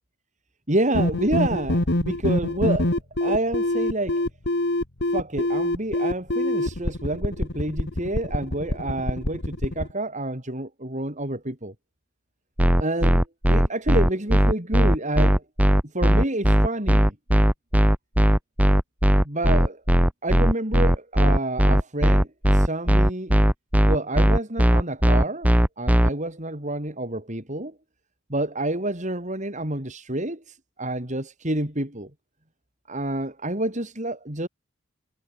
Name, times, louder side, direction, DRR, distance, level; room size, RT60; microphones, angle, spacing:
voice 1, 0.7-4.2 5.1-11.7 12.8-15.4 15.8-17.2 19.2-19.8 20.2-23.4 23.9-27.7 28.3-32.1 32.9-34.5, right 1 dB, 35° right, 4.6 m, -28 dB
sound 1, 0.9-9.9, left 1 dB, 50° left, 2.1 m, -25 dB
sound 2, 12.6-26.1, equal, 5° right, 1.0 m, -17 dB
head